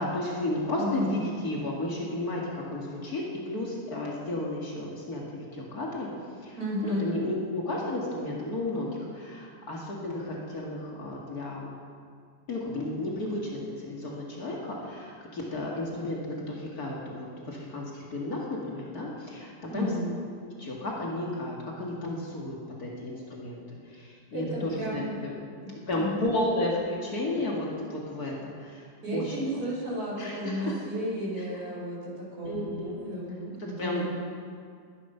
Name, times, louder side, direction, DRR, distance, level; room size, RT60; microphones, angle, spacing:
voice 1, 0.0-6.1 6.4-6.6 6.8-11.7 12.5-19.9 20.6-25.3 25.9-28.9 29.1-29.3 30.2-30.8 31.4-31.5 32.4-33.0 33.6-34.1, left 1 dB, 60° left, -3 dB, 2.4 m, -33 dB
voice 2, 0.7-1.2 6.6-7.1 19.7-20.2 24.3-26.2 29.0-34.1, equal, 55° right, -5 dB, 6.1 m, -33 dB
20.0 x 11.0 x 5.6 m, 2.2 s
omnidirectional pair, 1.8 m